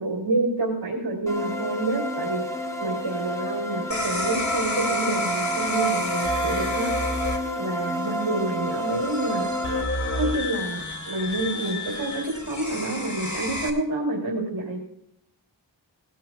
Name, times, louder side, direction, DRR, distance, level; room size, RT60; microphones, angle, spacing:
voice 1, 0.0-2.5 2.8-6.9 7.6-9.5 10.2-14.8, right 2 dB, 55° right, -2 dB, 3.3 m, -28 dB
sound 1, 1.3-9.8, right 1 dB, 5° left, 2.3 m, -29 dB
sound 2, 3.9-13.7, left 2 dB, 40° left, 2.3 m, -31 dB
19.0 x 12.5 x 2.4 m, 0.74 s
wide cardioid pair, 45°, 44 cm